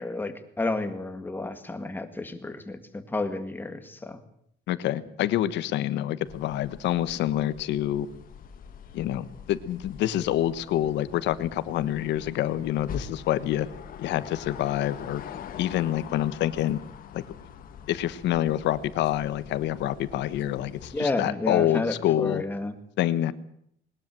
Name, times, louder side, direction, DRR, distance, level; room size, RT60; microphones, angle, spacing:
voice 1, 0.0-4.2 20.9-22.7, left 2 dB, 10° left, 8 dB, 1.9 m, -31 dB
voice 2, 4.7-8.1 8.9-13.7 14.0-15.2 15.6-16.8 17.1-17.2 17.9-22.4 23.0-23.3, left 12 dB, 70° left, 15 dB, 1.3 m, -27 dB
sound 1, 6.2-21.0, left 7 dB, 50° left, 1.8 m, -44 dB
21.0 x 20.0 x 7.8 m, 0.70 s
cardioid pair, 175°, 19 cm